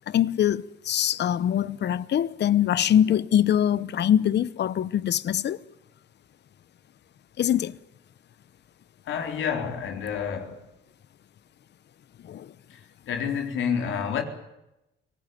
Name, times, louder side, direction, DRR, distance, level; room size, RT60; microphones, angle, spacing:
voice 1, 0.1-5.6 7.4-7.8 12.2-12.5, left 10 dB, 60° left, 0.9 m, -23 dB
voice 2, 9.1-10.7 12.7-14.2, left 7 dB, 75° left, 3.9 m, -29 dB
24.5 x 18.0 x 9.3 m
cardioid pair, 90°, 20 cm